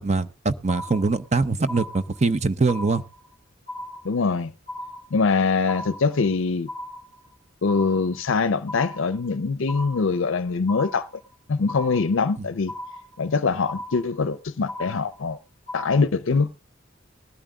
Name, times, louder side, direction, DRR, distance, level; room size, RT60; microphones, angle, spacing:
voice 1, 0.0-3.0, right 3 dB, 30° right, 0.6 m, -23 dB
sound 1, 0.7-1.3 1.7-2.3 2.7-3.3 3.7-4.3 4.7-5.3 5.7-6.3 6.7-7.3 7.7-8.3 8.7-9.3 9.7-10.3 10.7-11.3 11.7-12.3 12.7-13.3 13.7-14.3 14.7-15.3 15.7-15.9, left 1 dB, ahead, 5.6 m, -37 dB
voice 2, 4.0-4.5 5.1-6.7 7.6-11.1 11.5-12.7 13.2-15.4 15.7-16.6, left 4 dB, 70° left, 0.5 m, -23 dB
20.0 x 12.5 x 2.3 m
head